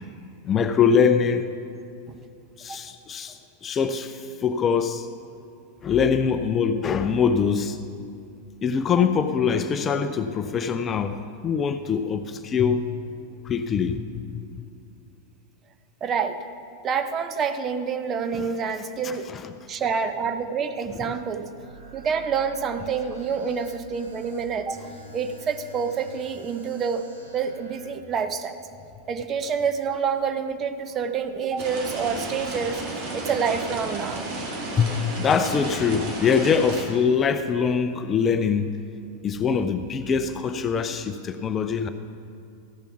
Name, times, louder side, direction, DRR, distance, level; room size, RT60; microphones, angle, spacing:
voice 1, 0.4-1.5 2.6-5.1 5.8-7.8 8.6-12.8 13.4-14.2 18.3-18.5 19.0-19.5 20.9-21.0 34.2-38.8 39.2-41.9, left 6 dB, 25° left, 10 dB, 0.5 m, -23 dB
voice 2, 16.0-16.4 16.8-19.3 19.7-21.5 21.9-24.8 25.1-27.1 27.3-28.6 29.1-34.3, right 6 dB, 25° right, 8 dB, 0.7 m, -27 dB
sound 1, 21.6-27.8, equal, 85° right, 1.9 m, -47 dB
sound 2, 31.6-36.8, right 2 dB, 45° right, 2.4 m, -33 dB
15.5 x 7.0 x 5.7 m, 2.5 s
figure-of-eight pair, 90°, 0 cm